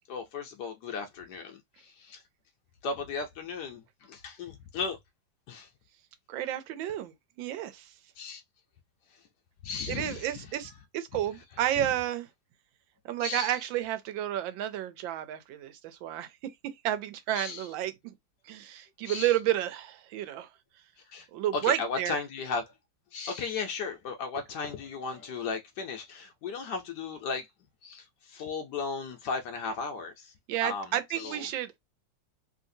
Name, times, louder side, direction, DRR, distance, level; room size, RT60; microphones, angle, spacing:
voice 1, 0.1-2.2 2.8-5.0 5.5-5.7 8.2-8.4 9.1-9.3 9.6-10.5 11.4-11.5 11.8-11.9 13.2-13.6 17.3-17.7 19.0-19.4 21.1-21.3 21.5-22.7 23.1-27.5 27.8-30.3 30.6-31.5, left 4 dB, 70° left, 1.1 m, -36 dB
voice 2, 6.3-7.1 7.4-7.9 9.9-12.3 13.0-17.9 18.5-20.5 21.3-22.2 30.5-31.8, right 12 dB, 90° right, 1.4 m, -31 dB
3.1 x 2.8 x 2.6 m
omnidirectional pair, 2.0 m